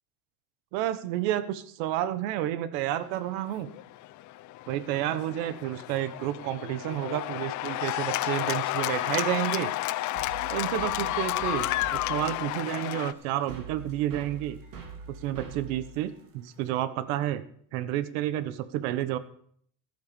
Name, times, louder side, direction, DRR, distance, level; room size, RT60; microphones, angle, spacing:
voice 1, 0.7-3.7 4.7-9.7 10.5-14.6 15.1-17.4 17.7-19.2, right 13 dB, 85° right, 14 dB, 1.3 m, -30 dB
Cheering / Applause, 3.4-13.1, left 16 dB, 45° left, 0.6 m, -31 dB
sound 1, 10.1-16.8, right 4 dB, 55° right, 3.9 m, -44 dB
14.0 x 9.4 x 7.0 m, 0.62 s
cardioid pair, 150°, 40 cm